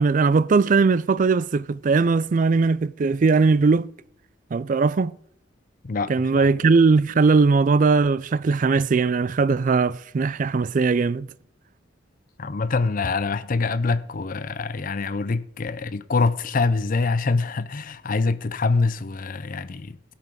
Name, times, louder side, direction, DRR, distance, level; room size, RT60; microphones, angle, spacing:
voice 1, 0.0-3.9 4.5-5.1 6.1-11.3, right 4 dB, 40° right, 0.4 m, -19 dB
voice 2, 5.8-6.5 12.4-20.0, left 3 dB, 45° left, 0.5 m, -25 dB
17.0 x 6.0 x 5.1 m
head